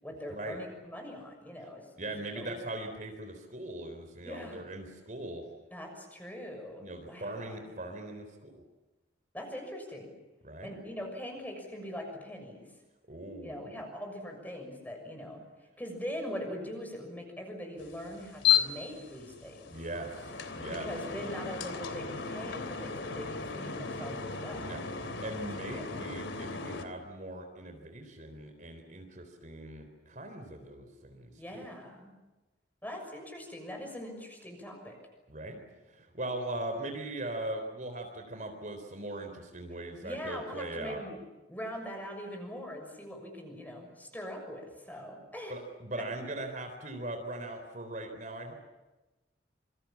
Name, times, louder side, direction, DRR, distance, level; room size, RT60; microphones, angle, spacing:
voice 1, 0.0-2.7 4.2-4.6 5.7-7.6 9.3-10.1 10.6-12.7 13.4-19.8 20.7-24.8 25.7-26.0 26.6-27.1 31.4-32.1 32.8-34.9 40.0-41.2 41.5-45.5, equal, 10° left, 3 dB, 6.6 m, -42 dB
voice 2, 2.0-5.4 6.8-8.6 10.4-10.7 13.1-13.7 19.7-20.9 24.7-31.3 35.3-35.6 35.9-41.0 45.5-48.5, right 1 dB, 45° right, 5 dB, 3.9 m, -40 dB
sound 1, 17.8-26.9, left 8 dB, 90° left, 3.1 m, -34 dB
27.5 x 25.5 x 7.4 m, 1.1 s
head